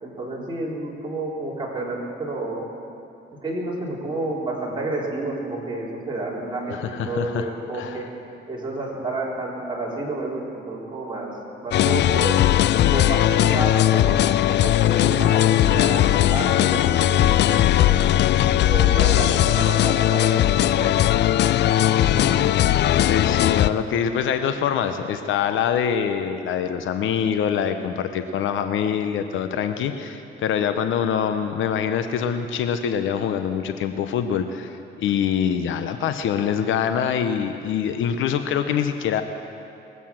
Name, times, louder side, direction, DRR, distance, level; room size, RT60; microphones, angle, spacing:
voice 1, 0.0-2.6 3.4-6.8 7.1-8.0 8.5-11.3 11.6-12.5 12.9-18.0 18.6-20.5 20.7-21.2 21.7-22.4, right 2 dB, 25° right, -5 dB, 3.8 m, -30 dB
voice 2, 6.7-8.1 23.1-39.2, left 8 dB, 80° left, 8 dB, 0.8 m, -24 dB
sound 1, 11.7-23.7, left 12 dB, 60° left, 0.4 m, -18 dB
20.5 x 8.2 x 7.4 m, 2.7 s
cardioid pair, 90°, 20 cm